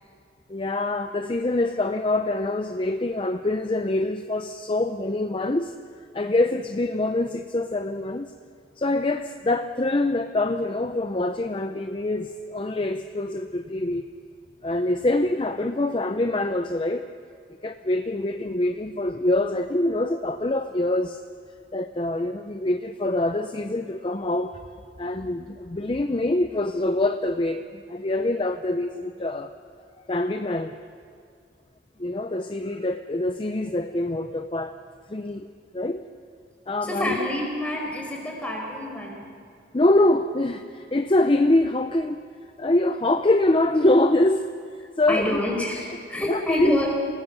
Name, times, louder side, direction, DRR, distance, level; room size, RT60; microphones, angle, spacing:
voice 1, 0.5-5.7 6.1-8.3 8.8-14.1 14.6-17.1 17.6-21.2 21.7-24.5 25.0-29.5 30.1-30.8 32.0-34.8 35.1-35.5 35.7-36.1 36.7-37.2 39.7-42.2 42.6-44.5 45.0-45.4 46.3-46.8, left 2 dB, 30° left, 8 dB, 0.6 m, -24 dB
voice 2, 36.8-39.3 45.1-46.9, left 1 dB, 10° left, 0 dB, 4.7 m, -27 dB
27.5 x 18.5 x 6.9 m, 2.3 s
head